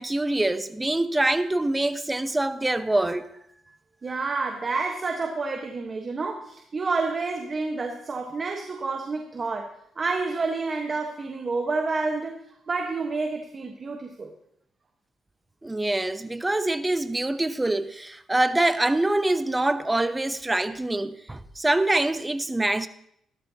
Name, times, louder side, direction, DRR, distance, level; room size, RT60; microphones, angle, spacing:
voice 1, 0.0-3.3 15.6-22.9, right 2 dB, 10° right, 0.8 m, -25 dB
voice 2, 4.0-12.4 12.7-14.3, right 3 dB, 35° right, 1.3 m, -29 dB
16.0 x 13.0 x 2.9 m
cardioid pair, 100°, 0 cm